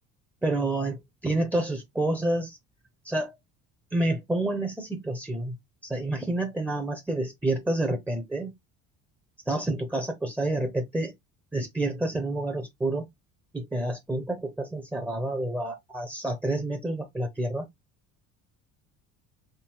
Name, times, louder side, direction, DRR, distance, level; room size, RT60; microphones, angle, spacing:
voice 1, 0.4-2.6 3.0-3.4 3.9-5.6 5.8-8.5 9.5-11.1 11.5-13.0 13.5-17.7, right 2 dB, 5° right, 0.9 m, -29 dB
3.8 x 2.2 x 4.4 m
cardioid pair, 105°, 35 cm